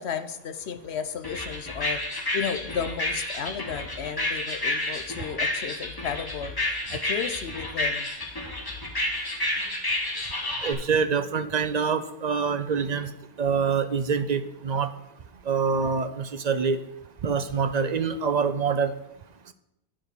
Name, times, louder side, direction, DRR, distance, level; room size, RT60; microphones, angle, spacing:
voice 1, 0.0-6.5 6.9-8.1, left 7 dB, 85° left, 10 dB, 1.0 m, -33 dB
sound 1, 1.2-10.7, left 1 dB, 20° left, 1.1 m, -30 dB
voice 2, 10.6-16.8 17.2-19.0 19.4-19.5, right 5 dB, 50° right, 11 dB, 0.6 m, -26 dB
9.5 x 5.0 x 6.0 m, 0.82 s
omnidirectional pair, 1.1 m